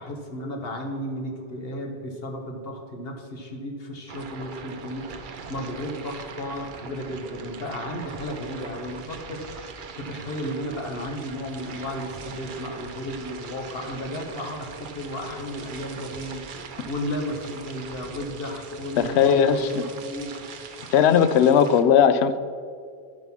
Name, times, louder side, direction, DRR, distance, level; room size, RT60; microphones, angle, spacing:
voice 1, 0.0-20.4 21.6-21.7, equal, 65° left, 3 dB, 1.5 m, -34 dB
sound 1, 4.1-21.8, right 5 dB, 55° right, 0.8 m, -41 dB
voice 2, 19.0-19.9 20.9-22.4, left 8 dB, 85° left, 12 dB, 0.8 m, -18 dB
10.5 x 5.5 x 5.9 m, 2.2 s
omnidirectional pair, 1.1 m